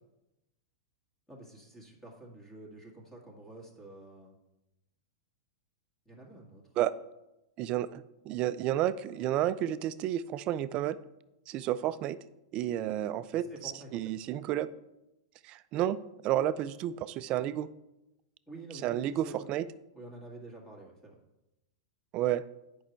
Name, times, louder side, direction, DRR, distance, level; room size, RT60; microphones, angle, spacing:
voice 1, 1.3-4.4 6.1-6.6 13.3-14.0 18.5-19.3 19.9-21.2, right 2 dB, 10° left, -1 dB, 1.9 m, -48 dB
voice 2, 7.6-11.0 11.5-12.2 12.5-14.7 15.4-16.0 16.2-17.7 18.8-19.7 22.1-22.4, right 12 dB, 35° right, 15 dB, 0.4 m, -31 dB
8.5 x 5.4 x 4.5 m, 0.93 s
hypercardioid pair, 135°, 3 cm